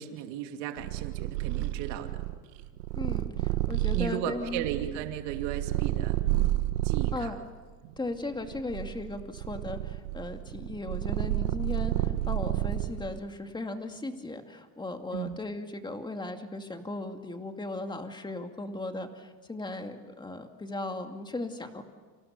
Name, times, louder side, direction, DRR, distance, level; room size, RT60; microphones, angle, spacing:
voice 1, 0.0-2.2 3.9-6.2 6.8-7.3 7.8-7.9 15.1-15.4, right 11 dB, 65° right, 5 dB, 2.8 m, -35 dB
Purr, 0.8-7.3 8.0-13.2, right 15 dB, 85° right, 1.8 m, -30 dB
voice 2, 3.0-4.7 7.1-7.4 8.0-21.8, left 2 dB, 10° left, 5 dB, 2.3 m, -37 dB
30.0 x 26.0 x 6.8 m, 1.4 s
supercardioid pair, 125°, 45 cm